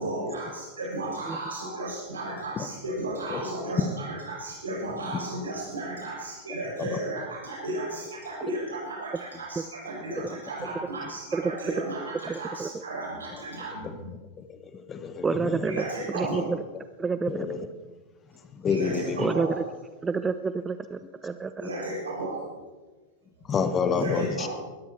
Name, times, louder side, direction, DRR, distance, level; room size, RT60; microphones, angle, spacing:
voice 1, 0.0-14.2 15.6-16.5 18.7-19.6 21.2-21.3 21.6-22.5 23.9-24.5, right 1 dB, 70° right, -2 dB, 7.0 m, -34 dB
voice 2, 11.3-11.7 12.3-12.8 15.2-15.8 16.1-16.6 17.0-17.5 19.2-19.6 20.0-21.7, right 4 dB, 15° right, 12 dB, 0.5 m, -29 dB
voice 3, 14.4-15.6 17.3-17.7 18.5-19.3 23.5-24.5, left 6 dB, 25° left, 10 dB, 1.2 m, -29 dB
20.5 x 13.5 x 4.6 m, 1.3 s
figure-of-eight pair, 90°, 0 cm